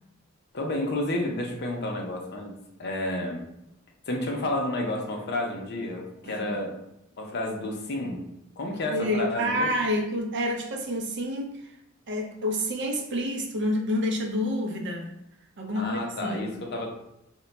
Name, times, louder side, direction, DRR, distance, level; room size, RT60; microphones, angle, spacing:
voice 1, 0.5-2.5 2.8-3.5 4.1-6.8 7.2-8.3 8.6-9.7 15.8-16.9, left 1 dB, 55° left, 1 dB, 0.6 m, -30 dB
voice 2, 8.9-11.8 12.1-15.1 15.6-16.5, equal, 60° right, 2 dB, 0.5 m, -28 dB
2.2 x 2.2 x 3.8 m, 0.83 s
head